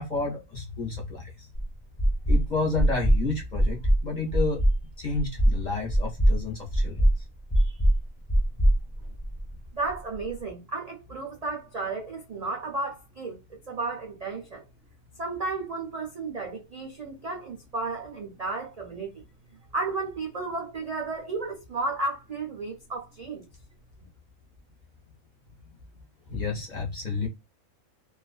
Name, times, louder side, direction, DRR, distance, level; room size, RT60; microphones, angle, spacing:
voice 1, 0.0-1.5 2.3-4.6 5.0-7.1 7.6-7.7 26.3-27.3, left 3 dB, 45° left, 0.6 m, -30 dB
sound 1, 1.5-1.6 2.0-2.4 2.8-3.2 3.5-4.0 4.3-4.8 5.1-5.6 5.9-6.4 6.7-7.1 7.5-8.0 8.3-9.5, right 1 dB, 20° left, 0.9 m, -21 dB
voice 2, 9.7-13.4 13.7-14.6 15.2-19.2 19.7-23.4, right 3 dB, 75° right, 0.3 m, -33 dB
2.4 x 2.3 x 2.3 m
omnidirectional pair, 1.5 m